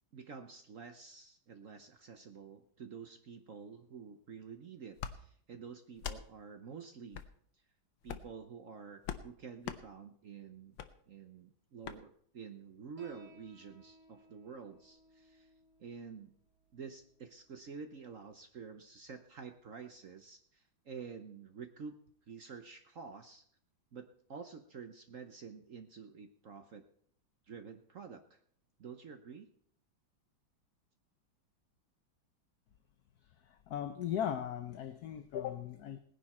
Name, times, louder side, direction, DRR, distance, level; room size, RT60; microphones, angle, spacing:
voice 1, 0.1-7.2 8.0-10.8 11.1-15.5 15.8-16.3 16.7-22.0 22.3-23.4 23.9-26.8 27.5-28.4 28.8-29.5, right 6 dB, 55° right, 7 dB, 1.0 m, -49 dB
sound 1, 5.0-5.2 6.0-6.2 7.1-7.3 8.0-8.3 9.0-9.3 9.6-9.8 10.8-10.9 11.8-12.0, left 9 dB, 80° left, 1.6 m, -41 dB
Piano, 13.0-20.0, right 1 dB, 85° right, 3.7 m, -63 dB
voice 2, 33.4-36.0, left 9 dB, 60° left, 9 dB, 1.1 m, -38 dB
18.5 x 10.5 x 4.3 m, 0.63 s
omnidirectional pair, 2.2 m